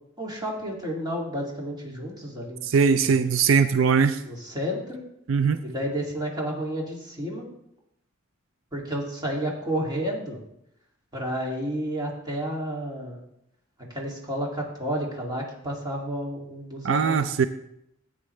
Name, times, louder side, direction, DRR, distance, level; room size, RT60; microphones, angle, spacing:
voice 1, 0.2-2.7 4.3-5.0 5.6-7.5 8.7-10.4 11.1-13.2 13.9-17.2, equal, 20° right, -2 dB, 2.4 m, -31 dB
voice 2, 2.6-4.2 5.3-5.6 16.8-17.5, right 5 dB, 85° right, 12 dB, 0.5 m, -20 dB
13.5 x 8.7 x 3.3 m, 0.79 s
head